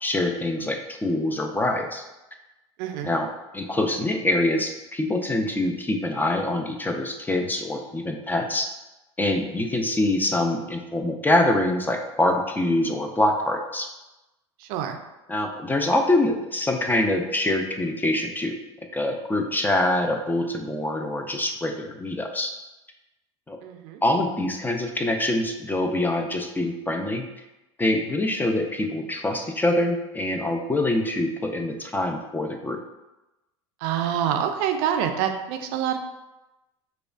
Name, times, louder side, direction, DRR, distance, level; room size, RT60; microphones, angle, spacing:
voice 1, 0.0-2.0 3.0-8.7 9.2-13.9 15.3-18.6 18.9-22.5 23.5-23.6 24.0-27.3 27.8-32.8, left 1 dB, 10° left, 4 dB, 0.4 m, -25 dB
voice 2, 2.8-3.1 14.6-15.0 23.6-24.0 33.8-36.0, right 9 dB, 60° right, 6 dB, 0.4 m, -26 dB
4.7 x 2.3 x 2.3 m, 1.0 s
hypercardioid pair, 85°, 15 cm